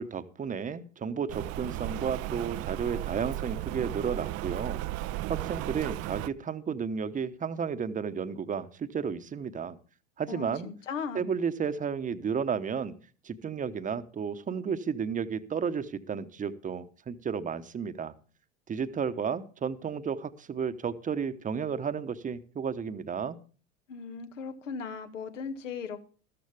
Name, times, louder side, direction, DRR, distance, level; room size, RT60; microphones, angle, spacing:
voice 1, 0.0-9.8 10.2-10.7 11.1-12.9 13.2-18.1 18.7-23.4, right 6 dB, 20° right, 13 dB, 1.0 m, -33 dB
Rain, 1.3-6.3, right 16 dB, 40° right, 0.6 m, -35 dB
voice 2, 10.3-11.3 23.9-26.0, left 5 dB, 85° left, 8 dB, 1.8 m, -37 dB
13.5 x 13.5 x 3.5 m, 0.39 s
hypercardioid pair, 90°, 37 cm